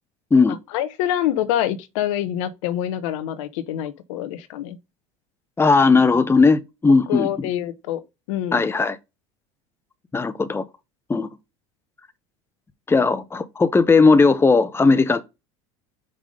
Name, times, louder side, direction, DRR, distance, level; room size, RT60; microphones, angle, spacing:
voice 1, 0.7-4.8 7.1-8.0 8.3-8.7, left 11 dB, 70° left, 0.9 m, -26 dB
voice 2, 5.6-7.3 8.5-9.0 10.1-10.6 11.1-11.3 12.9-15.2, left 4 dB, 15° left, 0.8 m, -17 dB
5.5 x 3.6 x 5.0 m
hypercardioid pair, 85°, 17 cm